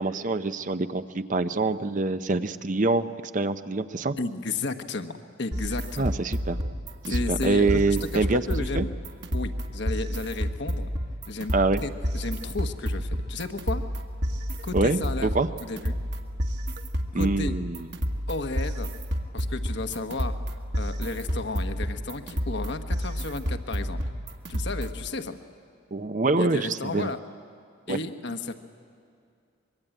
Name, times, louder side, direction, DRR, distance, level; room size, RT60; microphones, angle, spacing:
voice 1, 0.0-3.1 3.3-4.1 6.0-6.6 7.1-8.4 8.7-8.9 11.5-11.8 14.7-15.5 17.1-17.9 25.9-27.1 27.9-28.0, right 3 dB, 40° right, 10 dB, 0.7 m, -25 dB
voice 2, 4.2-6.1 7.1-8.9 9.3-10.9 11.3-11.5 11.8-13.8 14.6-15.3 15.6-16.0 17.1-17.6 18.3-18.9 19.3-20.4 20.7-24.0 24.5-25.4 26.4-27.2 27.9-28.5, left 3 dB, 60° left, 8 dB, 1.2 m, -33 dB
sound 1, 5.5-25.1, equal, 55° right, 1.7 m, -30 dB
24.5 x 22.5 x 9.1 m, 2.3 s
head